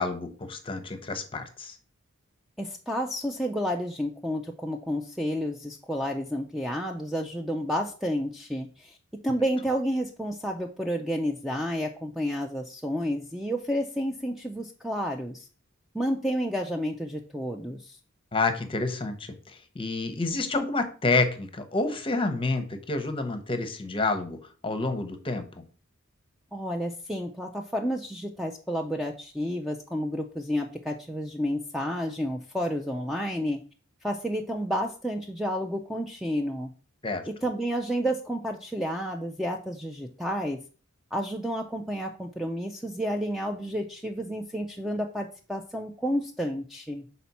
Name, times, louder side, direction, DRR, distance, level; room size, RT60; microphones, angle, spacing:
voice 1, 0.0-1.8 18.3-24.4 24.6-25.6 37.0-37.2, left 3 dB, 25° left, 8 dB, 0.8 m, -29 dB
voice 2, 2.6-9.0 9.2-15.5 15.9-18.0 26.5-33.6 34.0-36.7 37.4-40.6 41.1-47.0, equal, ahead, 3 dB, 0.4 m, -30 dB
5.7 x 4.2 x 4.1 m, 0.39 s
head